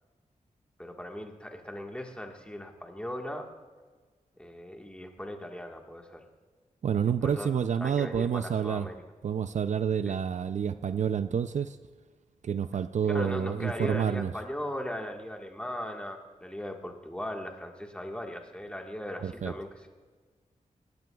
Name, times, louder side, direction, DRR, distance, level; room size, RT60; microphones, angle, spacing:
voice 1, 0.8-3.5 4.4-6.2 7.0-7.5 7.8-9.0 10.0-10.2 13.0-19.9, left 1 dB, 10° left, 2 dB, 1.5 m, -38 dB
voice 2, 6.8-8.9 9.2-11.8 12.4-14.3 19.2-19.5, right 7 dB, 60° right, 11 dB, 0.4 m, -28 dB
18.5 x 15.5 x 2.3 m, 1.4 s
wide cardioid pair, 105°, 14 cm